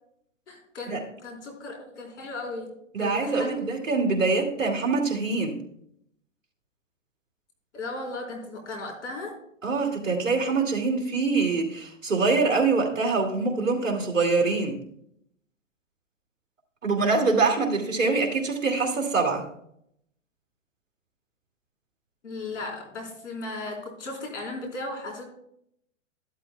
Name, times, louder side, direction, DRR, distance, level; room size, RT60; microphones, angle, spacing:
voice 1, 0.5-2.7 3.0-3.7 7.7-9.3 22.2-25.2, left 2 dB, 65° left, 0 dB, 4.2 m, -36 dB
voice 2, 2.9-5.6 9.6-14.8 16.8-19.4, right 4 dB, 80° right, 1 dB, 2.5 m, -24 dB
13.5 x 12.0 x 2.3 m, 0.72 s
hypercardioid pair, 120°, 39 cm